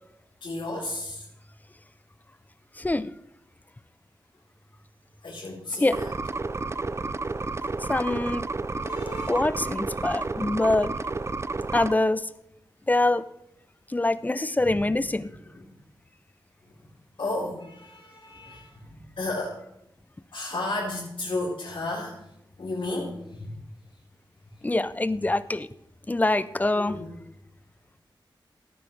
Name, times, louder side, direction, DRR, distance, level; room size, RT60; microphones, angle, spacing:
voice 1, 0.4-1.2 5.2-6.1 8.7-9.4 14.6-14.7 17.2-18.7 19.2-19.6 20.3-22.2 22.6-23.5 26.8-27.1, left 2 dB, 75° left, -9 dB, 4.0 m, -33 dB
voice 2, 2.8-3.1 5.8-6.0 7.9-8.5 9.3-10.9 11.7-12.3 12.9-13.2 13.9-15.3 24.6-25.7 26.1-27.0, left 2 dB, 20° left, 15 dB, 0.5 m, -24 dB
sound 1, 5.9-11.9, right 3 dB, 30° right, 0.5 m, -31 dB
17.0 x 9.3 x 3.4 m, 0.84 s
wide cardioid pair, 75°, 9 cm